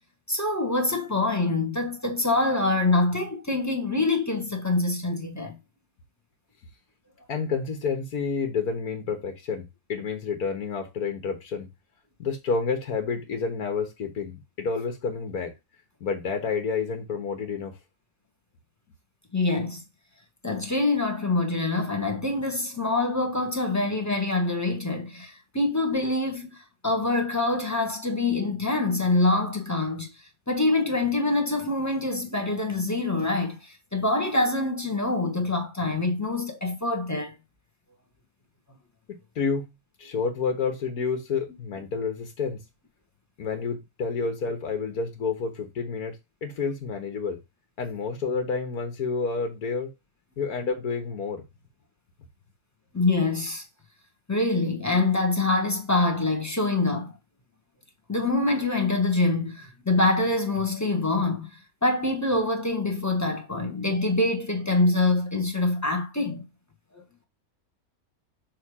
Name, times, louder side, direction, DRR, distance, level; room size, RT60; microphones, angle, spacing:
voice 1, 0.3-5.6 19.3-19.8 20.4-30.1 30.5-37.3 52.9-53.6 54.3-57.2 58.1-61.5 61.8-66.4 66.9-67.0, left 2 dB, 10° left, 1.4 m, -25 dB
voice 2, 7.3-11.7 12.2-15.5 16.0-17.8 39.4-39.6 40.0-42.6 43.4-46.2 46.4-47.4 47.8-49.9 50.4-51.4, left 5 dB, 80° left, 1.9 m, -29 dB
6.5 x 3.4 x 4.8 m
omnidirectional pair, 1.5 m